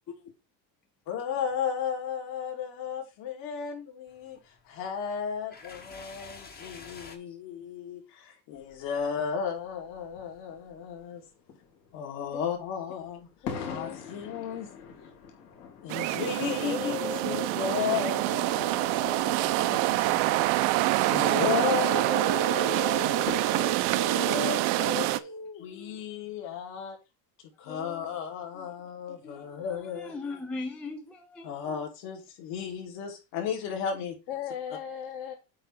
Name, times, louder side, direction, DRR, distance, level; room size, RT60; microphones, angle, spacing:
voice 1, 1.1-4.4 4.6-11.2 11.9-13.3 13.6-14.7 15.8-20.4 21.1-25.1 25.6-27.0 27.6-30.1 31.4-34.2, left 7 dB, 60° left, 3.0 m, -34 dB
sound 1, 4.1-7.2, left 4 dB, 20° left, 1.1 m, -48 dB
sound 2, 8.5-24.4, left 6 dB, 90° left, 3.3 m, -47 dB
voice 2, 13.4-14.1 16.6-20.3 22.1-23.7 24.0-26.1 27.6-28.1 28.5-28.7 29.1-29.6 34.3-35.3, left 5 dB, 40° left, 1.3 m, -40 dB
sound 3, 15.9-25.2, right 17 dB, 65° right, 0.7 m, -26 dB
voice 3, 29.2-31.8, left 3 dB, 5° left, 0.3 m, -39 dB
8.8 x 3.3 x 5.5 m
cardioid pair, 155°, 48 cm